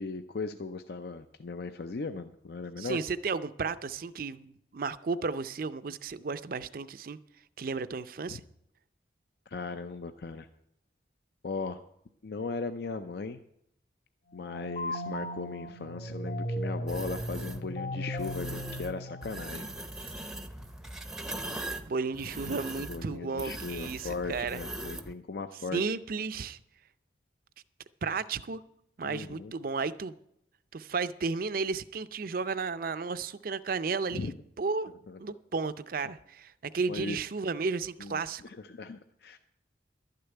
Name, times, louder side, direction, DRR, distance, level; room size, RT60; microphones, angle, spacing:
voice 1, 0.0-3.0 8.3-8.4 9.5-10.5 11.4-11.8 12.2-13.4 14.3-19.7 22.9-25.9 29.0-29.5 34.1-34.3 35.1-35.2 36.9-37.2 38.0-39.4, left 3 dB, 60° left, 9 dB, 0.5 m, -38 dB
voice 2, 2.8-7.2 7.6-8.4 21.9-24.6 25.7-26.6 28.0-28.6 29.0-30.1 30.7-34.3 34.6-34.9 35.2-38.4, right 4 dB, 50° right, 14 dB, 0.5 m, -33 dB
sound 1, 14.3-19.8, equal, 45° left, 1.6 m, -37 dB
sound 2, 16.9-17.6 18.2-18.9 19.2-25.1, right 1 dB, 5° right, 0.6 m, -40 dB
12.0 x 6.7 x 9.0 m, 0.76 s
head